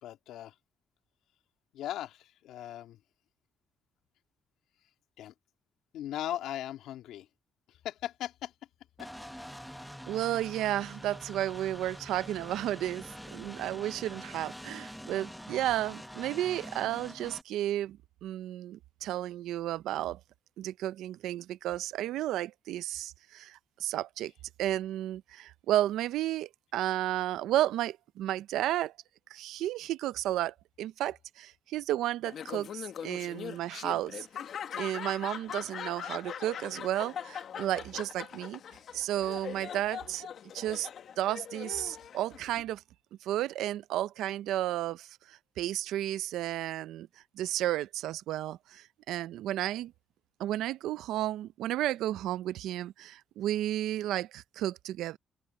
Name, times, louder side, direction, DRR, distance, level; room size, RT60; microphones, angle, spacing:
voice 1, 0.0-0.5 1.7-3.0 5.2-5.3 5.9-7.3 7.7-8.5 9.0-9.1, left 12 dB, 85° left, 2.1 m, -38 dB
sound 1, 9.0-17.4, equal, ahead, 0.9 m, -45 dB
voice 2, 10.1-20.2 20.6-24.3 24.6-28.9 29.3-34.3 34.8-38.6 38.9-40.3 40.5-40.9 41.2-42.8 43.2-47.1 47.4-49.9 50.4-55.2, right 13 dB, 85° right, 0.5 m, -33 dB
Laughter, 32.2-42.6, left 8 dB, 65° left, 1.4 m, -41 dB
open air
cardioid pair, 90°, 0 cm